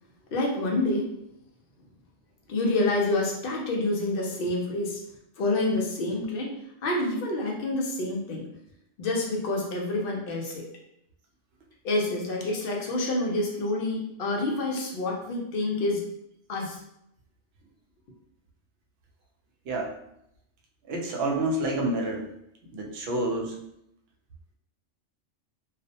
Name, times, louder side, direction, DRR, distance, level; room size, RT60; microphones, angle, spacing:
voice 1, 0.3-1.1 2.5-5.0 5.4-6.5 6.8-8.5 9.0-10.6 11.8-16.0 16.5-16.8, left 2 dB, 60° left, -1 dB, 0.6 m, -27 dB
voice 2, 20.9-22.2 22.7-23.5, right 1 dB, 65° right, 0 dB, 0.7 m, -28 dB
2.3 x 2.0 x 2.7 m, 0.78 s
omnidirectional pair, 1.2 m